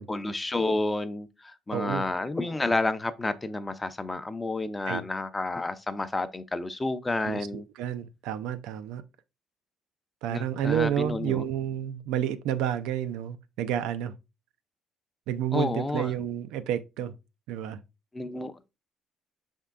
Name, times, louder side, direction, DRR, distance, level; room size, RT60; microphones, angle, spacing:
voice 1, 0.1-7.7 10.3-11.4 15.5-16.1 18.1-18.5, left 2 dB, 20° left, 0.4 m, -30 dB
voice 2, 1.7-2.1 4.9-5.0 7.2-9.0 10.2-14.1 15.3-17.1 17.5-17.8, right 10 dB, 90° right, 0.3 m, -30 dB
5.4 x 3.6 x 2.2 m
cardioid pair, 95°, 0 cm